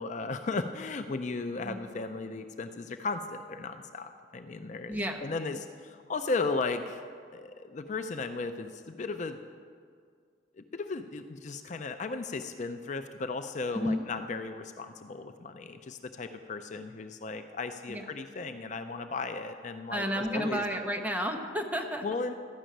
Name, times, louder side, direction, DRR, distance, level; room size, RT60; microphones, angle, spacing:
voice 1, 0.0-7.0 7.3-9.4 10.6-20.6 22.0-22.3, left 3 dB, 40° left, 8 dB, 0.5 m, -36 dB
voice 2, 4.9-5.3 13.7-14.0 17.9-18.1 19.9-22.0, equal, 10° right, 3 dB, 0.9 m, -32 dB
12.5 x 6.2 x 9.0 m, 2.1 s
head